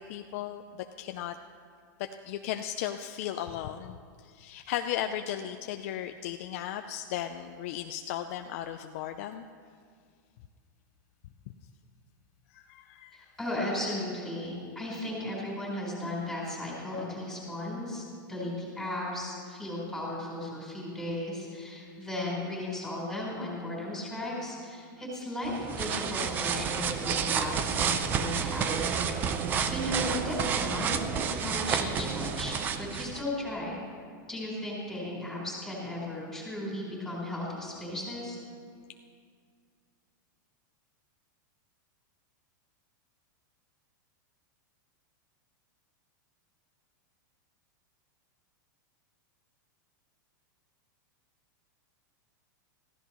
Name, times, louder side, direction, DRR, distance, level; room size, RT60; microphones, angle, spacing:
voice 1, 0.0-1.4 2.2-4.0 4.2-9.4 12.5-13.2, left 11 dB, 45° left, 6 dB, 0.5 m, -36 dB
voice 2, 13.1-18.0 18.3-33.8 34.3-38.3, left 1 dB, ahead, -5 dB, 4.3 m, -36 dB
sound 1, 25.4-33.2, right 7 dB, 15° right, 0.5 m, -30 dB
22.5 x 15.5 x 3.1 m, 2.1 s
supercardioid pair, 170°, 11 cm